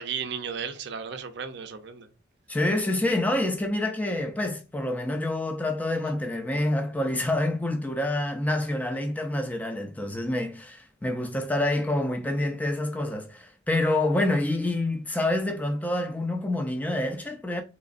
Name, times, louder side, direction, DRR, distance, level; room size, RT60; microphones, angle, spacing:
voice 1, 0.0-2.1, right 6 dB, 55° right, 0.5 m, -34 dB
voice 2, 2.5-17.6, left 1 dB, 10° left, 0.4 m, -27 dB
3.6 x 3.0 x 2.5 m
head